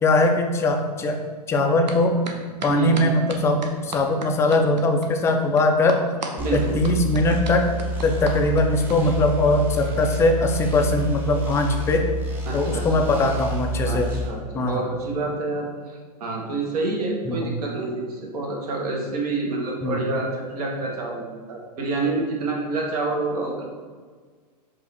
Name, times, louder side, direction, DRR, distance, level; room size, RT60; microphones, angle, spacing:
voice 1, 0.0-1.2 1.5-2.2 2.6-6.0 6.5-7.7 8.0-12.1 12.5-14.1 14.5-14.8 17.3-17.5 19.8-20.0, left 2 dB, 15° left, 4 dB, 0.4 m, -21 dB
sound 1, 1.9-2.0 2.2-9.0, right 3 dB, 85° right, 0.7 m, -34 dB
voice 2, 2.7-3.0 6.4-6.8 12.4-13.1 13.8-23.6, right 2 dB, 65° right, 0 dB, 1.2 m, -28 dB
sound 2, 6.4-14.3, equal, 10° right, 0.8 m, -29 dB
4.7 x 2.5 x 4.1 m, 1.6 s
hypercardioid pair, 115°, 21 cm